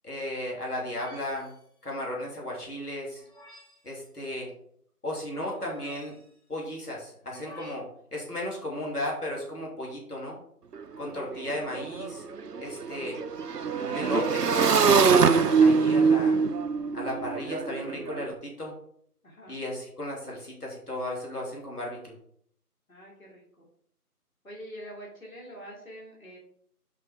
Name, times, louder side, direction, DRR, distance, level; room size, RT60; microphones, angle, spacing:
voice 1, 0.0-1.5 1.8-3.2 3.8-4.5 5.0-6.1 6.5-10.4 11.0-12.2 12.6-13.2 13.8-16.4 16.9-18.7 19.5-22.1, left 1 dB, 75° left, -2 dB, 3.0 m, -35 dB
sound 1, 0.9-1.7 3.1-3.9 5.5-6.4 7.2-7.7, left 1 dB, 45° left, 2.4 m, -51 dB
Motorcycle / Engine, 10.7-10.8 11.1-18.2, right 5 dB, 80° right, 0.7 m, -24 dB
voice 2, 11.1-11.6 19.2-19.6 22.9-23.7 24.4-26.4, equal, 60° left, -3 dB, 2.8 m, -45 dB
6.1 x 5.5 x 4.8 m, 0.65 s
figure-of-eight pair, 180°, 46 cm